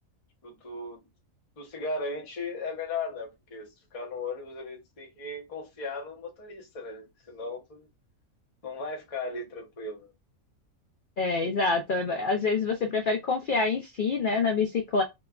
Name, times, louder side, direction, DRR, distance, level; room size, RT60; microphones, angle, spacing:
voice 1, 0.4-1.0 1.6-7.9 8.6-10.1, left 3 dB, 30° left, 0.7 m, -37 dB
voice 2, 11.2-15.0, left 4 dB, 75° left, 0.4 m, -26 dB
3.0 x 2.3 x 2.2 m
omnidirectional pair, 1.5 m